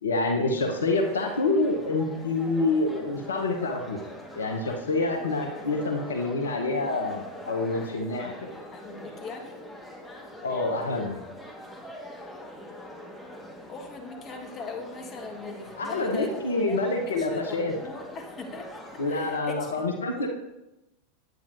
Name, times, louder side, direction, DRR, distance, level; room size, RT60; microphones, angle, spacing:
voice 1, 0.0-4.0 4.4-8.3 10.4-11.2 15.8-17.7 19.0-20.3, left 2 dB, 80° left, 3 dB, 0.9 m, -27 dB
sound 1, 0.5-19.4, equal, ahead, 1.6 m, -43 dB
voice 2, 8.7-9.6 13.7-16.4 16.7-18.8 19.1-20.3, left 4 dB, 30° left, 2 dB, 1.6 m, -40 dB
9.3 x 8.6 x 2.6 m, 0.93 s
figure-of-eight pair, 90°, 0 cm